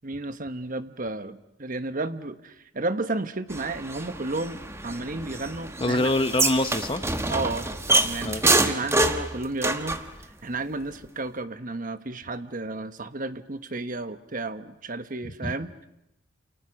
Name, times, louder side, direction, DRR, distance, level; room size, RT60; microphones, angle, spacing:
voice 1, 0.0-6.1 7.3-7.7 7.9-10.0 10.4-15.9, right 2 dB, 45° right, 11 dB, 1.2 m, -32 dB
sound 1, 3.5-10.1, right 2 dB, 15° right, 1.3 m, -26 dB
voice 2, 5.8-7.0 8.2-8.4 15.4-15.5, left 1 dB, 25° left, 9 dB, 1.0 m, -25 dB
28.5 x 28.5 x 6.4 m, 0.84 s
head